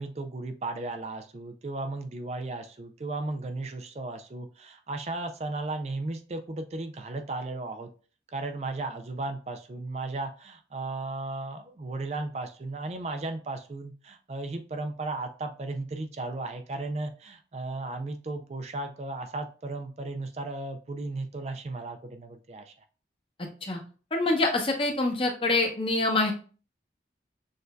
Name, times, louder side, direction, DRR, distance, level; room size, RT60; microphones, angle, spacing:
voice 1, 0.0-7.9 8.3-22.7, right 2 dB, 35° right, 7 dB, 0.4 m, -35 dB
voice 2, 24.1-26.3, left 2 dB, 30° left, 2 dB, 0.8 m, -25 dB
6.3 x 2.6 x 2.2 m, 0.37 s
head